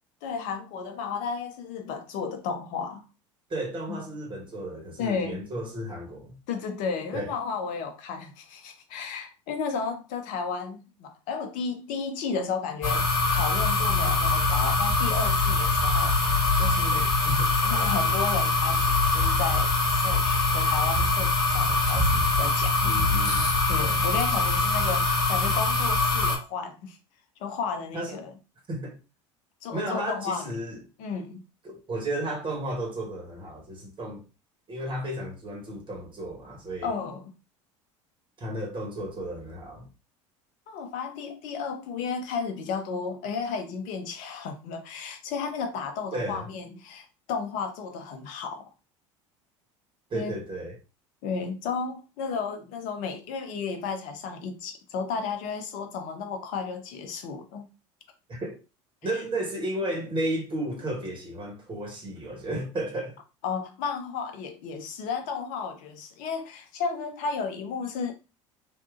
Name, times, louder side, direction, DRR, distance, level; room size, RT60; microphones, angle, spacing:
voice 1, 0.2-3.0 3.9-4.0 5.0-5.4 6.5-17.2 17.6-22.9 23.7-27.0 27.4-28.3 29.6-30.5 31.0-31.4 36.8-37.3 40.7-48.7 50.1-50.3 51.2-57.7 63.4-68.1, left 5 dB, 55° left, 0.7 m, -33 dB
voice 2, 3.5-6.4 7.1-7.3 16.9-17.5 22.8-23.4 27.9-28.2 28.7-29.0 29.7-30.8 31.6-34.2 34.7-36.9 38.4-39.9 46.1-46.5 50.1-50.8 58.3-58.6 59.0-63.2, right 1 dB, 30° right, 1.3 m, -33 dB
sound 1, 12.8-26.4, left 3 dB, 25° left, 1.4 m, -23 dB
3.5 x 2.4 x 2.5 m
hypercardioid pair, 70°, 16 cm